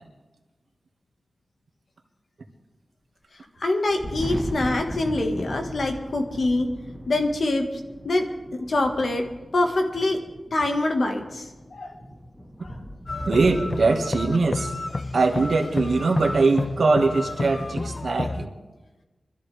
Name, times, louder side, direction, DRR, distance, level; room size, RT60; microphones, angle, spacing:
voice 1, 3.6-6.7 7.1-9.2 9.5-10.2 10.5-11.5 11.7-11.9 12.6-12.8, left 2 dB, 65° left, 4 dB, 1.7 m, -25 dB
Thunder, 3.8-13.7, equal, 15° left, 1.3 m, -38 dB
sound 1, 13.1-18.5, left 2 dB, 40° left, 0.4 m, -30 dB
voice 2, 13.2-14.7 15.1-18.5, right 3 dB, 75° right, 2 dB, 1.8 m, -22 dB
23.5 x 14.0 x 3.5 m, 1.2 s
wide cardioid pair, 90°, 0 cm